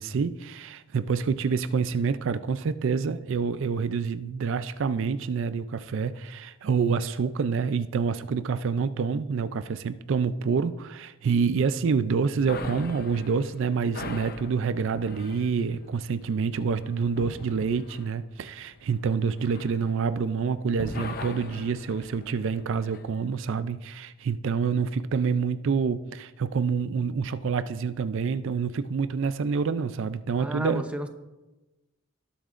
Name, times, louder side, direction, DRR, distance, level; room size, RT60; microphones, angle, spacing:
voice 1, 0.0-30.8, right 5 dB, 60° right, 13 dB, 0.4 m, -27 dB
sound 1, 12.4-20.4 20.7-23.1, left 3 dB, 45° left, 0.7 m, -41 dB
voice 2, 30.4-31.1, equal, 5° right, 6 dB, 0.6 m, -33 dB
18.5 x 8.6 x 2.5 m, 1.1 s
head